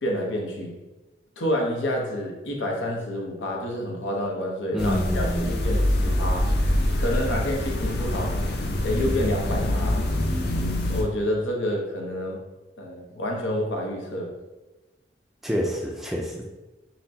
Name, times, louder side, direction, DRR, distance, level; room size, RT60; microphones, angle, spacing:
voice 1, 0.0-0.7 1.4-6.5 7.0-8.4 8.8-10.0 10.9-12.4 12.8-14.3, left 1 dB, 85° left, 0 dB, 0.8 m, -28 dB
voice 2, 4.7-5.5 15.4-16.4, equal, ahead, 0 dB, 0.3 m, -27 dB
sound 1, 4.8-11.0, left 1 dB, 60° left, 0.5 m, -25 dB
5.7 x 2.1 x 2.7 m, 1.1 s
head